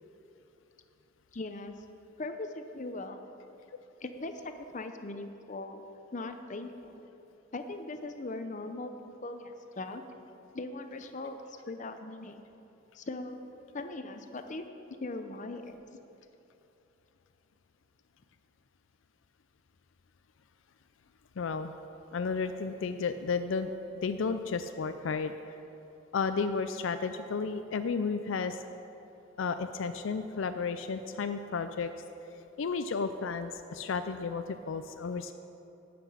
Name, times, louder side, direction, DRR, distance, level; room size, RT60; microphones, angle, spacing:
voice 1, 1.3-1.8 2.2-3.2 4.0-5.8 6.1-7.0 7.5-8.9 9.2-10.0 10.5-12.4 12.9-13.4 13.7-14.7 15.0-15.8, left 2 dB, 40° left, 7 dB, 0.7 m, -39 dB
voice 2, 21.4-21.7 22.1-25.3 26.1-28.6 29.4-31.9 32.6-35.3, left 5 dB, 75° left, 9 dB, 0.4 m, -33 dB
11.5 x 6.0 x 8.4 m, 2.9 s
head